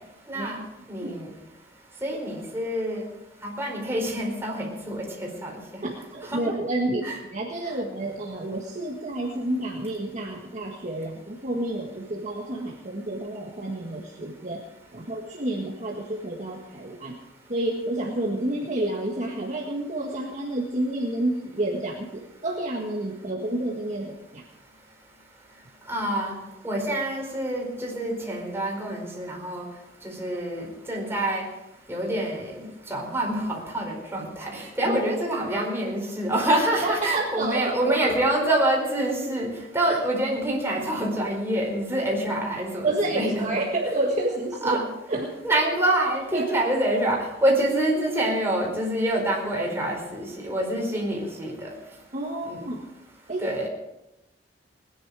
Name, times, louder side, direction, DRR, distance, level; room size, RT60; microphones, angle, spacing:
voice 1, 0.9-1.3 2.0-3.0 3.4-5.0 5.4-5.5 6.3-6.4 7.0-7.2 25.9-26.3 26.6-29.6 30.0-31.4 31.9-32.5 32.9-39.5 39.7-43.6 44.6-44.8 45.4-51.7 52.5-52.6 53.4-53.7, right 1 dB, 15° right, -2 dB, 4.7 m, -26 dB
voice 2, 5.8-14.6 14.9-17.2 17.5-24.4 34.9-35.0 36.8-38.0 39.8-39.9 42.8-44.8 45.1-45.3 46.3-46.5 52.1-52.8 53.3-53.5, right 1 dB, 40° right, -1 dB, 1.7 m, -29 dB
20.0 x 10.5 x 4.9 m, 0.92 s
head